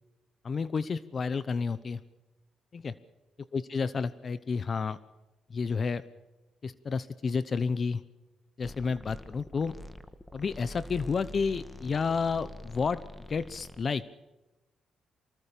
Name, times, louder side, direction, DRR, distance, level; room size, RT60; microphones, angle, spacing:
voice 1, 0.4-2.0 2.7-2.9 3.5-5.0 5.5-6.0 6.6-8.0 8.6-9.8 10.3-13.0 13.3-14.0, left 5 dB, 40° left, 16 dB, 0.9 m, -30 dB
sound 1, 8.6-13.8, left 1 dB, 5° left, 1.8 m, -45 dB
24.5 x 19.5 x 6.9 m, 1.1 s
cardioid pair, 90°, 0 cm